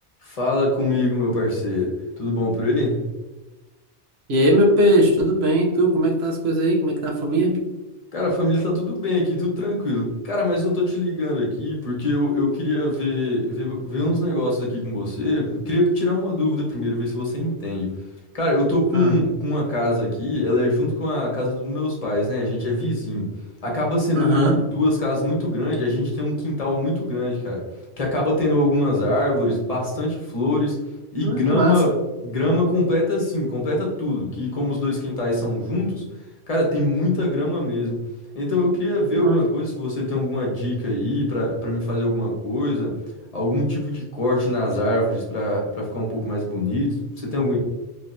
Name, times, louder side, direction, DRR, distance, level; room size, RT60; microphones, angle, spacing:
voice 1, 0.2-3.1 8.1-17.9 18.3-23.3 23.6-27.7 28.0-30.8 31.1-31.9 32.2-36.0 36.5-38.0 38.3-43.0 43.3-47.6, left 1 dB, 35° left, -2 dB, 1.1 m, -23 dB
voice 2, 4.3-7.5 18.9-19.1 24.1-24.6 31.2-31.8 39.1-39.4, right 1 dB, 65° right, 0 dB, 1.1 m, -19 dB
3.7 x 3.4 x 2.7 m, 1.1 s
omnidirectional pair, 1.2 m